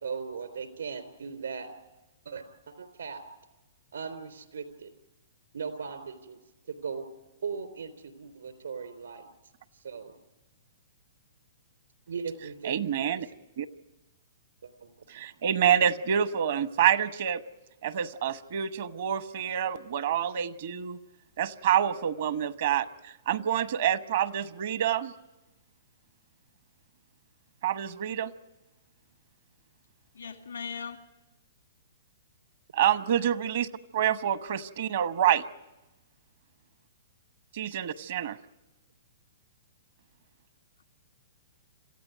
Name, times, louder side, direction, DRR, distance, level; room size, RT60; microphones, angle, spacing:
voice 1, 0.0-1.7 2.3-3.2 3.9-4.9 5.5-6.4 6.7-7.1 7.4-9.2 9.8-10.1 12.1-13.2 14.6-14.9, right 5 dB, 80° right, 3.7 m, -38 dB
voice 2, 12.6-13.3 13.6-13.7 15.1-17.4 17.8-21.0 21.4-25.1 27.6-28.3 32.7-33.7 33.9-35.4 37.5-38.4, right 9 dB, 60° right, 1.0 m, -27 dB
voice 3, 30.1-31.1 32.8-32.9, left 6 dB, 90° left, 1.9 m, -39 dB
27.0 x 15.0 x 9.3 m
hypercardioid pair, 120°, 0 cm